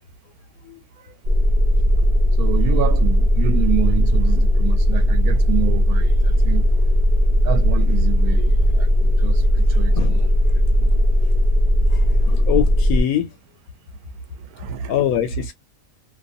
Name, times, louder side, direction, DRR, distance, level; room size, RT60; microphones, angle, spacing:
sound 1, 1.2-13.0, equal, 55° right, 0.6 m, -17 dB
voice 1, 2.4-6.7 7.4-10.3 14.4-14.9, right 10 dB, 85° right, 1.1 m, -27 dB
voice 2, 10.0-10.3 11.9-13.3 14.9-15.5, left 10 dB, 80° left, 1.0 m, -23 dB
2.5 x 2.3 x 2.5 m
omnidirectional pair, 1.5 m